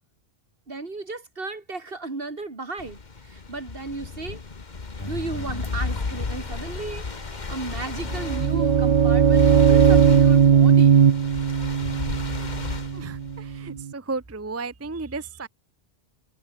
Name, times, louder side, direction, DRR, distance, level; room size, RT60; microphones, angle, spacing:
voice 1, 0.7-4.4 5.0-11.1, right 3 dB, 65° right, 2.8 m, -35 dB
sound 1, 2.8-13.7, left 4 dB, 45° left, 1.6 m, -34 dB
sound 2, 5.0-13.7, left 2 dB, 25° left, 1.9 m, -43 dB
sound 3, 8.0-13.9, right 7 dB, 50° right, 0.8 m, -18 dB
voice 2, 12.9-15.5, right 3 dB, 15° right, 0.7 m, -34 dB
omnidirectional pair, 1.0 m